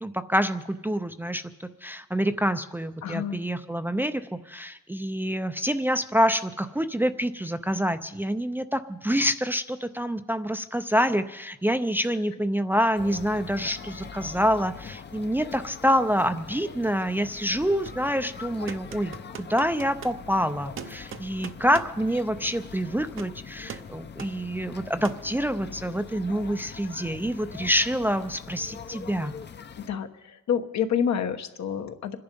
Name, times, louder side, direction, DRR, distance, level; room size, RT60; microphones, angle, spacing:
voice 1, 0.0-29.3, equal, 5° right, 8 dB, 0.5 m, -27 dB
voice 2, 3.0-3.4 29.8-32.2, left 8 dB, 65° left, 7 dB, 1.3 m, -28 dB
sound 1, 13.0-29.9, left 6 dB, 35° left, 0.8 m, -43 dB
sound 2, 17.6-18.1 18.7-20.2 20.8-22.0 23.1-23.4 23.7-23.9 24.2-24.4 25.0-25.3, right 7 dB, 45° right, 0.8 m, -41 dB
25.5 x 10.5 x 5.3 m, 0.97 s
cardioid pair, 110°, 30 cm